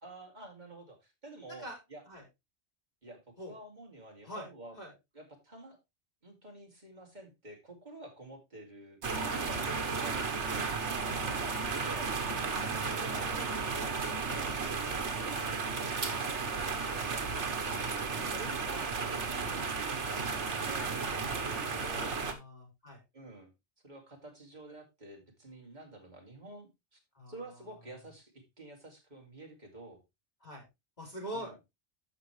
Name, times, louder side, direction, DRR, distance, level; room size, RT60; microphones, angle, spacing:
voice 1, 0.0-2.0 3.0-3.2 3.4-4.7 5.1-5.8 6.2-10.3 11.0-12.1 12.6-13.3 13.7-16.2 16.5-17.5 19.1-19.5 20.3-22.2 23.1-23.5 23.8-27.0 27.3-30.0 31.3-31.5, right 1 dB, 40° right, 1 dB, 2.8 m, -50 dB
sound 1, 9.0-22.3, right 4 dB, 85° right, 1.5 m, -34 dB
voice 2, 18.1-19.6 21.6-23.0 27.1-27.5 30.4-30.6 31.0-31.6, equal, 35° left, 0 dB, 3.8 m, -46 dB
13.5 x 5.3 x 3.2 m, 0.22 s
omnidirectional pair, 1.2 m